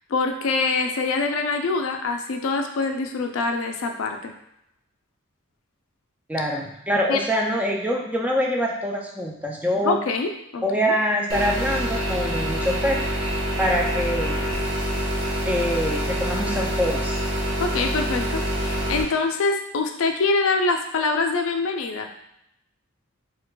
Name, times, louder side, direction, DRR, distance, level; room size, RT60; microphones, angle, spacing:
voice 1, 0.1-4.3 7.1-7.2 9.8-10.8 17.6-22.1, left 3 dB, 70° left, 4 dB, 0.4 m, -24 dB
voice 2, 6.3-10.0 10.6-13.0 13.6-14.5 15.4-17.2, equal, 5° right, -1 dB, 0.3 m, -25 dB
sound 1, 11.3-19.0, equal, 65° right, 0.8 m, -26 dB
4.5 x 2.3 x 2.2 m, 0.80 s
head